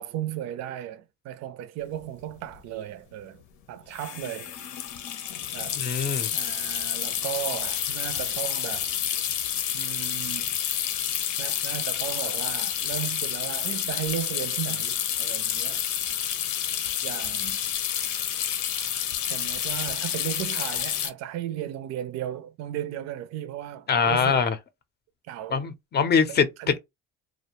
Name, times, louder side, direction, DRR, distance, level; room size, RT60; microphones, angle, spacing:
voice 1, 0.0-3.4 3.7-4.6 5.5-5.8 6.3-8.9 9.7-10.6 11.4-15.8 17.0-17.6 19.3-24.4 25.3-25.6 26.3-26.8, right 12 dB, 60° right, 0.5 m, -35 dB
sound 1, 2.0-2.1 2.3-2.6 3.9-21.1, left 9 dB, 80° left, 0.7 m, -29 dB
voice 2, 5.8-6.3 23.9-24.6 25.5-26.5, left 6 dB, 35° left, 0.5 m, -23 dB
2.6 x 2.1 x 2.9 m
cardioid pair, 120°, 30 cm